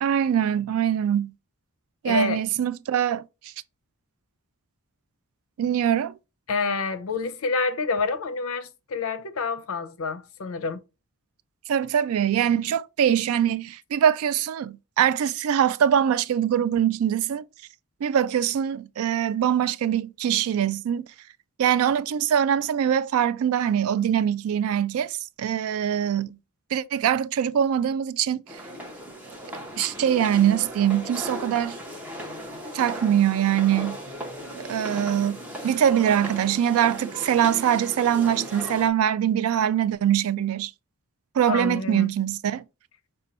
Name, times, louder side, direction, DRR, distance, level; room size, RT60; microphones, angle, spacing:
voice 1, 0.0-1.3 2.0-3.5 5.6-6.1 11.7-17.4 18.0-21.1 21.6-26.4 26.7-28.6 29.8-31.8 32.7-34.0 34.7-40.7 41.4-42.6, right 9 dB, 75° right, 0.3 m, -23 dB
voice 2, 2.0-2.4 6.5-10.8 41.5-42.1, left 4 dB, 70° left, 0.5 m, -28 dB
sound 1, 28.5-38.9, equal, 5° right, 0.7 m, -37 dB
5.2 x 2.2 x 4.0 m
head